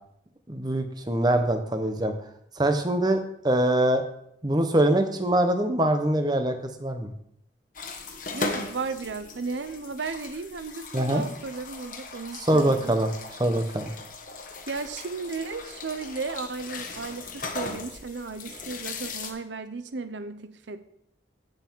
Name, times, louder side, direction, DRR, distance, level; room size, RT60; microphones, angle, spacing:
voice 1, 0.5-2.1 2.6-4.0 4.4-7.1 10.9-11.2 12.4-13.1 13.4-13.9, right 1 dB, 20° right, 7 dB, 0.9 m, -23 dB
sound 1, 7.7-19.3, left 3 dB, 45° left, 1.2 m, -38 dB
voice 2, 8.3-12.9 14.7-20.8, right 4 dB, 75° right, 11 dB, 0.6 m, -35 dB
14.5 x 5.7 x 4.6 m, 0.73 s
head